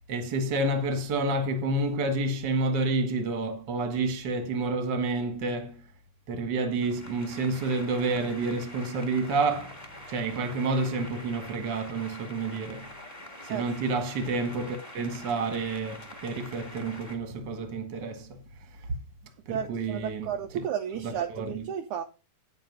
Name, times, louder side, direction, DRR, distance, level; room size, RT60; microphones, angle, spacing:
voice 1, 0.1-5.8 6.3-9.7 10.1-12.9 13.4-18.4 19.5-20.3 20.5-20.6 21.0-21.6, right 3 dB, 45° right, 1.6 m, -29 dB
sound 1, 6.8-17.2, left 1 dB, 5° left, 1.5 m, -45 dB
voice 2, 19.5-22.0, right 9 dB, 80° right, 1.7 m, -33 dB
9.4 x 6.7 x 5.3 m
omnidirectional pair, 4.2 m